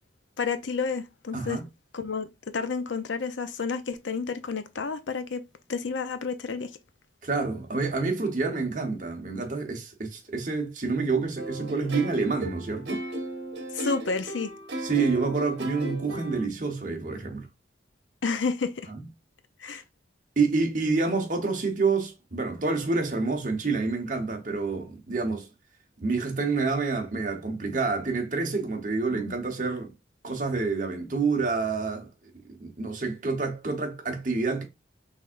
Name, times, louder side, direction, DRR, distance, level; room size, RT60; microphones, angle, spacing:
voice 1, 0.4-1.6 1.9-5.4 5.7-6.7 13.7-14.5 18.2-18.9 19.6-19.8 29.1-29.4, left 5 dB, 80° left, 0.6 m, -30 dB
voice 2, 7.2-13.0 14.8-17.5 19.7-19.8 20.4-25.5 26.0-29.9 30.2-32.1 32.5-34.6, right 4 dB, 45° right, 1.1 m, -28 dB
sound 1, 11.4-16.5, right 1 dB, 65° right, 1.3 m, -36 dB
5.7 x 3.5 x 2.5 m
head